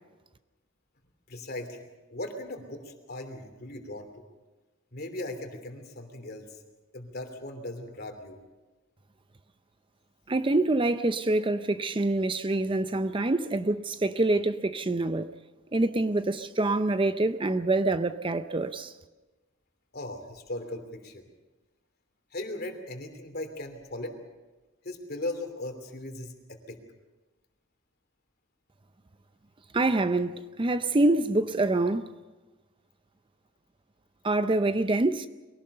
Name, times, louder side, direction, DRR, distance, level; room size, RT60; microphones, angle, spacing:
voice 1, 1.3-4.2 4.9-6.6 6.9-8.4 19.9-21.3 22.3-24.1 24.8-26.8, left 1 dB, 50° left, 3.0 m, -38 dB
voice 2, 10.3-15.3 15.7-18.9 29.7-32.1 34.2-35.3, right 2 dB, 25° right, 0.6 m, -26 dB
23.0 x 17.5 x 6.7 m
head